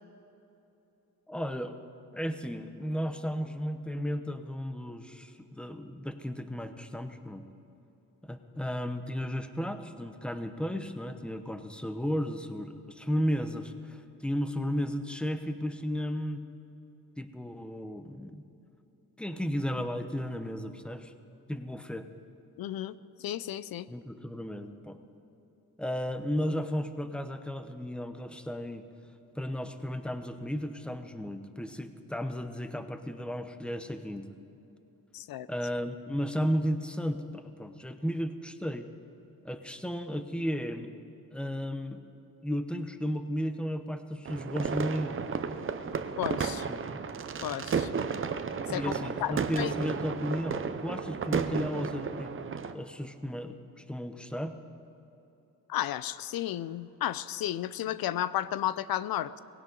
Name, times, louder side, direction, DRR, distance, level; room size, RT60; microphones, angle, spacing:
voice 1, 1.3-1.8 2.1-7.5 8.2-16.4 17.2-18.4 19.2-21.1 21.5-22.1 23.9-25.0 25.8-28.8 29.4-34.3 35.5-38.9 39.4-40.9 41.3-42.0 42.4-45.2 46.7-47.0 48.7-54.6, equal, 5° left, 9 dB, 0.8 m, -34 dB
voice 2, 22.6-23.9 35.1-35.5 46.2-46.7 47.4-47.9 48.7-48.9 49.2-49.7 55.7-59.4, left 12 dB, 80° left, 16 dB, 0.6 m, -33 dB
sound 1, 44.3-52.7, right 6 dB, 35° right, 0.7 m, -33 dB
19.5 x 16.5 x 3.9 m, 2.9 s
cardioid pair, 120°, 35 cm